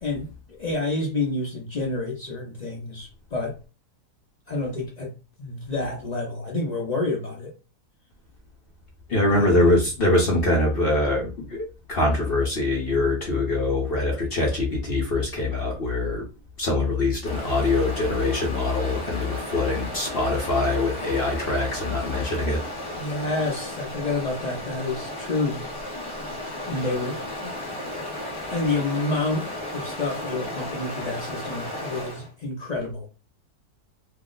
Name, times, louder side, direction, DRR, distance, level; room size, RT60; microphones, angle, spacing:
voice 1, 0.0-3.6 4.5-5.1 5.4-7.5 9.3-9.9 23.0-25.6 26.7-27.5 28.5-33.1, left 2 dB, 70° left, 0.4 m, -29 dB
voice 2, 9.1-16.2 16.6-22.6, left 2 dB, 50° left, 0.8 m, -23 dB
Stream, 17.2-32.3, left 1 dB, 20° left, 0.9 m, -34 dB
2.7 x 2.0 x 3.8 m
omnidirectional pair, 1.7 m